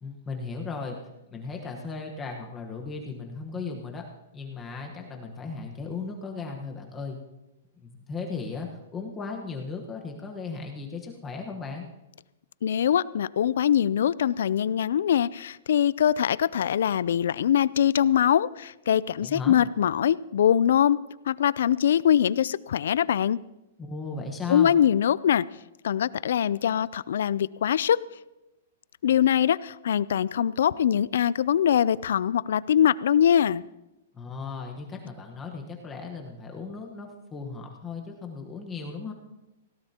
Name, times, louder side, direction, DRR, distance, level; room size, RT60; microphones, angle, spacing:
voice 1, 0.0-1.0 1.3-4.1 4.3-7.2 7.8-11.9 19.2-19.6 23.8-24.8 34.1-39.1, left 4 dB, 15° left, 1 dB, 1.2 m, -36 dB
voice 2, 12.6-21.0 21.3-23.4 24.5-25.4 25.8-28.0 29.0-33.6, left 9 dB, 75° left, 20 dB, 0.4 m, -23 dB
19.5 x 16.5 x 2.9 m, 0.98 s
hypercardioid pair, 160°, 0 cm